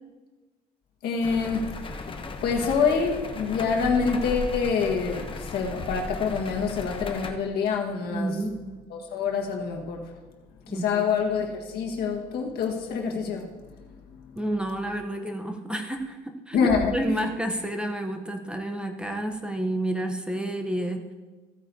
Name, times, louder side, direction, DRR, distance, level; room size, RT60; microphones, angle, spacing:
voice 1, 1.0-2.1 2.4-8.3 8.9-10.1 10.7-13.5 13.8-14.2 16.5-16.9, left 5 dB, 70° left, 1 dB, 1.6 m, -26 dB
sound 1, 1.2-7.3, left 2 dB, 30° left, 0.9 m, -36 dB
voice 2, 8.1-8.5 10.7-11.0 14.4-21.1, right 1 dB, 5° right, 4 dB, 0.8 m, -30 dB
15.0 x 8.9 x 2.8 m, 1.3 s
cardioid pair, 110°, 17 cm